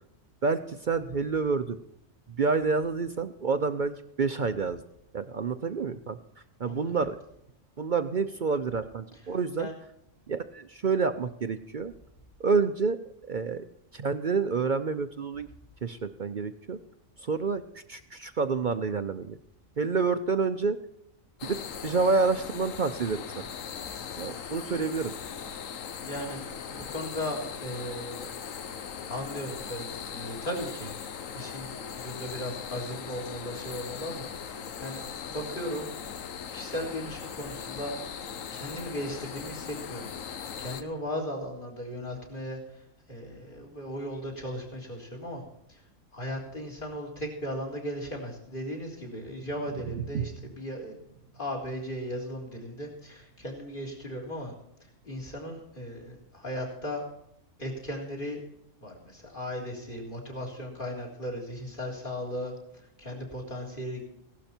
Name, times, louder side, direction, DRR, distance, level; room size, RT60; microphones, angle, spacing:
voice 1, 0.4-1.8 2.3-4.8 5.1-6.2 6.6-7.2 7.8-9.7 10.3-11.9 12.4-13.0 13.3-13.7 13.9-15.5 15.8-16.8 17.2-19.4 19.8-20.8 21.4-23.5 24.2-25.1, right 4 dB, 45° right, 10 dB, 0.7 m, -28 dB
sound 1, 21.4-40.8, left 7 dB, 85° left, 1.3 m, -39 dB
voice 2, 26.1-28.3 28.8-35.0 35.3-35.9 36.5-38.0 38.5-40.1 40.6-45.4 45.7-45.8 46.1-51.0 51.3-54.5 55.0-57.0 57.6-58.4 58.8-64.0, equal, 40° left, 2 dB, 3.9 m, -37 dB
sound 2, 48.9-55.1, right 8 dB, 75° right, 1.1 m, -42 dB
16.5 x 12.0 x 4.4 m, 0.76 s
omnidirectional pair, 1.3 m